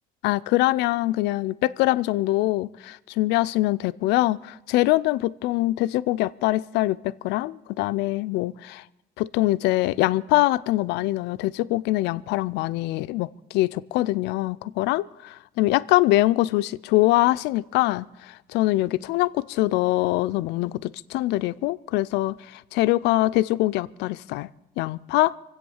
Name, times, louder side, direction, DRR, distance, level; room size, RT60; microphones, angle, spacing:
voice 1, 0.2-8.8 9.2-24.5 24.8-25.3, left 17 dB, 90° left, 0.4 m, -23 dB
24.0 x 8.2 x 7.1 m
cardioid pair, 110°, 17 cm